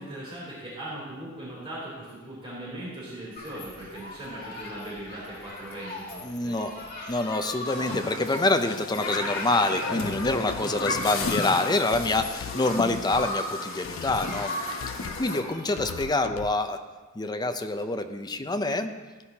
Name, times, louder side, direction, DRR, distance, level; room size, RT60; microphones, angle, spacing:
voice 1, 0.0-6.6 10.4-10.8, right 1 dB, 25° right, -7 dB, 3.4 m, -39 dB
Human group actions, 3.4-16.0, left 1 dB, 45° left, 2.4 m, -38 dB
voice 2, 6.2-6.8 7.1-14.5 15.2-16.8 17.2-18.9, left 2 dB, 20° left, 7 dB, 0.6 m, -26 dB
Human group actions 2, 7.6-15.4, left 3 dB, 65° left, 0.9 m, -34 dB
sound 1, 10.0-10.7 11.0-11.4 11.9-12.6 12.9-13.3 13.8-14.5 14.8-15.3 15.8-16.6, left 8 dB, 80° left, 0.3 m, -41 dB
16.0 x 10.0 x 2.9 m, 1.3 s
head